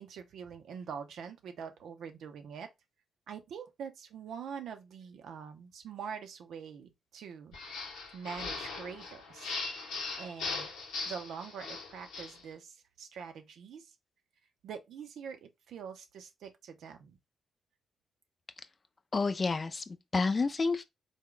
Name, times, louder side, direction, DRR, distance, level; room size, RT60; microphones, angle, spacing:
voice 1, 0.0-2.7 3.3-7.6 8.1-9.5 10.2-10.7 11.1-13.9 14.6-17.2, right 7 dB, 75° right, 0.6 m, -44 dB
sound 1, 7.5-12.4, left 4 dB, 85° left, 0.9 m, -39 dB
voice 2, 19.1-20.8, left 4 dB, 40° left, 0.5 m, -30 dB
3.4 x 2.2 x 3.7 m
hypercardioid pair, 45°, 0 cm